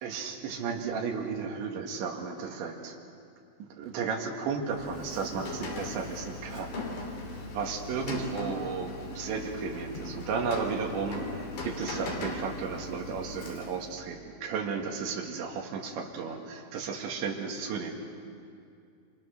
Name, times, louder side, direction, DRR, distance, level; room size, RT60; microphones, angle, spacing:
voice 1, 0.0-3.0 3.6-6.8 7.5-17.9, right 5 dB, 70° right, 1 dB, 4.3 m, -34 dB
Rain, 4.7-13.9, left 2 dB, 65° left, 5.1 m, -39 dB
30.0 x 26.0 x 6.7 m, 2.4 s
omnidirectional pair, 5.6 m